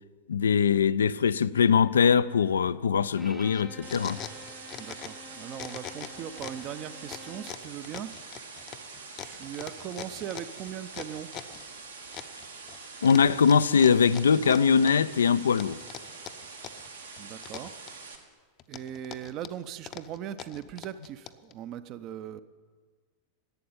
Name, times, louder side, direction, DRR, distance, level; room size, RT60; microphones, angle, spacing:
voice 1, 0.3-4.2 13.0-15.8, left 6 dB, 70° left, 0.3 m, -22 dB
Bowed string instrument, 3.2-7.7, equal, 5° right, 0.7 m, -49 dB
sound 1, 3.5-5.3 5.5-6.7 7.1-11.6 12.1-12.8 13.1-15.2 15.6-16.9 17.2-18.2 18.6-21.5, left 11 dB, 35° left, 0.6 m, -42 dB
sound 2, 3.8-18.2, right 4 dB, 75° right, 1.5 m, -45 dB
voice 2, 4.8-8.5 9.2-11.3 17.2-17.7 18.7-22.4, right 10 dB, 40° right, 0.6 m, -39 dB
11.5 x 8.5 x 9.2 m
figure-of-eight pair, 90°, 0 cm